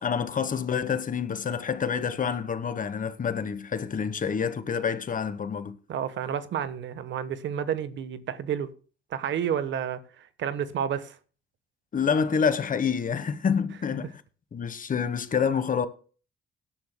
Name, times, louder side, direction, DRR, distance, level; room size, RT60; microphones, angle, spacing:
voice 1, 0.0-5.8 11.9-14.1 14.5-15.9, left 6 dB, 40° left, 1.3 m, -27 dB
voice 2, 5.9-8.7 9.1-11.2, right 9 dB, 70° right, 1.2 m, -30 dB
17.5 x 10.5 x 2.2 m
cardioid pair, 90°, 20 cm